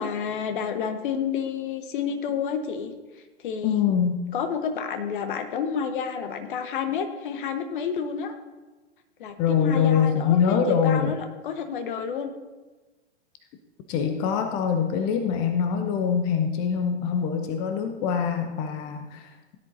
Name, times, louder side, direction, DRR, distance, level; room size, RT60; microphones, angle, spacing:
voice 1, 0.0-2.9 3.4-3.8 4.3-8.3 9.2-11.2 11.4-12.3, left 7 dB, 50° left, 7 dB, 1.3 m, -30 dB
voice 2, 3.6-4.2 9.4-11.1 13.9-19.6, left 7 dB, 15° left, 6 dB, 0.3 m, -24 dB
16.5 x 10.5 x 2.7 m, 1.3 s
figure-of-eight pair, 105°, 33 cm